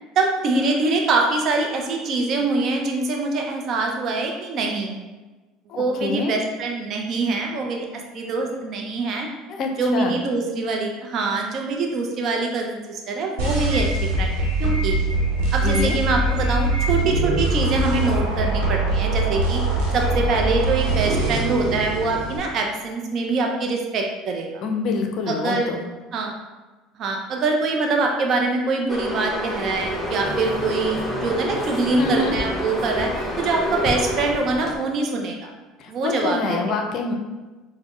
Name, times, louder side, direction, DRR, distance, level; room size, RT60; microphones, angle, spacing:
voice 1, 0.2-5.0 5.7-7.9 8.1-9.3 9.8-15.0 15.5-19.6 19.9-24.6 25.3-25.7 26.1-26.4 27.0-33.1 33.4-35.5 35.9-36.8, right 3 dB, 50° right, 1 dB, 0.5 m, -24 dB
voice 2, 5.7-6.3 9.5-10.2 15.6-16.0 24.6-25.8 32.0-32.4 35.8-37.1, left 4 dB, 55° left, 4 dB, 0.5 m, -26 dB
sound 1, 13.4-22.4, right 2 dB, 80° right, 1.0 m, -22 dB
sound 2, 28.9-34.3, equal, 10° left, 1.0 m, -29 dB
sound 3, 29.6-34.8, left 2 dB, 30° left, 1.1 m, -34 dB
4.1 x 2.1 x 3.0 m, 1.2 s
supercardioid pair, 95°, 0 cm